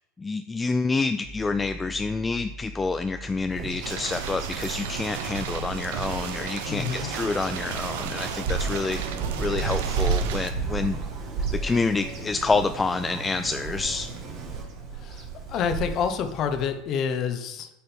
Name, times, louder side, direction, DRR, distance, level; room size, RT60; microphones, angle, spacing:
voice 1, 0.2-9.0 9.4-11.0 11.6-14.1, left 4 dB, 15° left, 9 dB, 0.3 m, -28 dB
sound 1, 1.2-16.7, equal, 90° right, 2.3 m, -46 dB
Bird vocalization bird call bird song, 3.5-16.8, right 5 dB, 50° right, 1.5 m, -33 dB
sound 2, 3.8-10.5, right 9 dB, 65° right, 0.6 m, -35 dB
voice 2, 6.7-7.1 14.9-17.7, left 7 dB, 45° left, 7 dB, 0.9 m, -28 dB
8.9 x 4.2 x 3.6 m, 0.91 s
hypercardioid pair, 80°, 0 cm